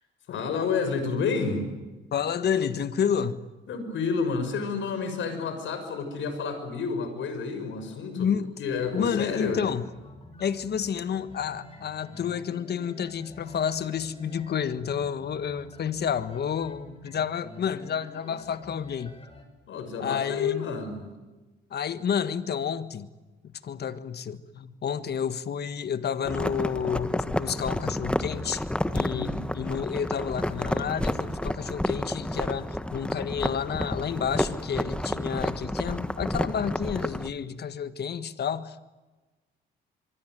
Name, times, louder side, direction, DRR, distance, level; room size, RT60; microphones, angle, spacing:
voice 1, 0.3-1.7 3.7-8.3 8.6-9.6 19.7-21.1 29.1-29.5, left 5 dB, 75° left, 9 dB, 6.3 m, -30 dB
voice 2, 2.1-3.4 8.2-8.5 8.9-9.8 10.4-19.1 20.0-20.7 21.7-23.1 23.6-28.6 28.9-38.9, left 7 dB, 55° left, 13 dB, 1.6 m, -30 dB
sound 1, 8.8-19.4, left 2 dB, 30° left, 6.6 m, -49 dB
sound 2, 26.3-37.3, left 1 dB, 5° left, 1.3 m, -30 dB
25.0 x 24.0 x 9.4 m, 1.2 s
cardioid pair, 90°, 20 cm